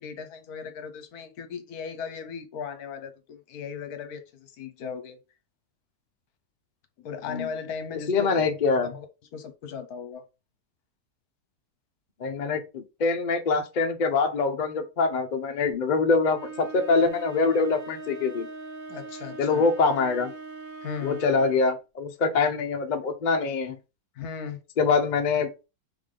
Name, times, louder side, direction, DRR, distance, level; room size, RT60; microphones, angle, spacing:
voice 1, 0.0-5.2 7.0-8.5 8.9-9.0 9.3-10.2 18.9-19.7 20.8-21.2 24.1-24.6, left 6 dB, 70° left, 1.2 m, -37 dB
voice 2, 8.1-8.9 12.2-18.5 19.4-20.3 21.0-23.8 24.8-25.5, left 4 dB, 50° left, 0.5 m, -24 dB
sound 1, 16.3-21.7, right 3 dB, 60° right, 1.2 m, -41 dB
3.7 x 3.4 x 3.7 m
omnidirectional pair, 1.8 m